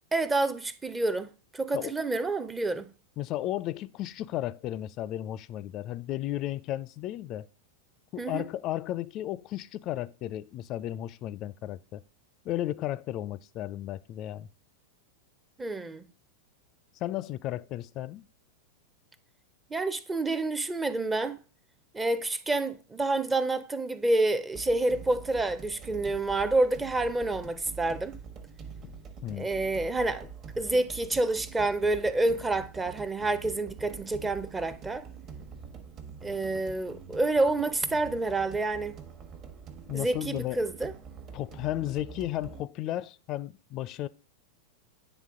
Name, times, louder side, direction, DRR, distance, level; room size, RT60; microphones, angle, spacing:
voice 1, 0.1-2.9 8.2-8.5 15.6-16.1 19.7-21.4 21.9-28.2 29.4-30.3 30.6-35.0 36.2-39.0 39.9-40.9, right 2 dB, 15° right, 0.5 m, -28 dB
voice 2, 3.2-7.5 8.1-12.0 12.4-14.5 17.0-18.3 29.2-29.5 39.9-40.6 41.3-44.1, left 13 dB, 40° left, 0.4 m, -34 dB
sound 1, 24.5-42.6, right 5 dB, 35° right, 1.1 m, -45 dB
9.0 x 3.4 x 3.6 m
hypercardioid pair, 95°, 0 cm